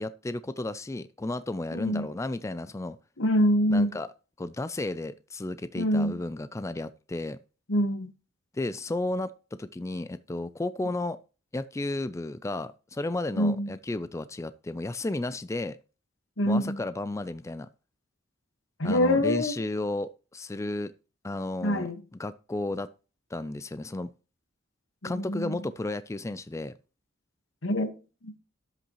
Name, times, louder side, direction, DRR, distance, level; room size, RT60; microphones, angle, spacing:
voice 1, 0.0-3.0 3.7-4.1 4.4-7.4 8.5-11.2 11.5-15.8 16.5-17.7 18.8-20.9 21.2-21.9 22.2-22.9 23.3-24.1 25.0-26.7, left 2 dB, 15° left, 0.4 m, -33 dB
voice 2, 1.7-2.1 3.2-3.9 5.7-6.1 7.7-8.1 10.9-11.0 13.3-13.7 16.4-16.8 18.8-19.5 21.6-22.0 25.0-25.7 27.6-27.9 28.2-28.3, equal, 80° left, 1.4 m, -25 dB
11.5 x 7.9 x 3.0 m
head